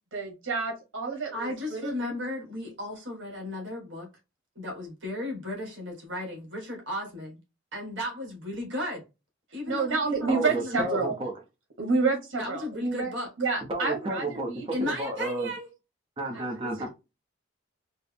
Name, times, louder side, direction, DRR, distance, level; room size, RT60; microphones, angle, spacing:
voice 1, 0.1-1.9 9.7-11.1 11.8-13.1 13.4-14.6 16.3-16.4, right 4 dB, 75° right, 1.4 m, -29 dB
voice 2, 1.3-4.1 4.5-7.4 7.7-9.0 9.5-10.9 12.4-13.3 14.7-15.7 16.3-16.7, left 1 dB, 60° right, 1.6 m, -35 dB
voice 3, 10.3-11.3 13.7-15.5 16.2-16.9, right 2 dB, 25° right, 0.7 m, -31 dB
4.4 x 2.0 x 3.3 m
head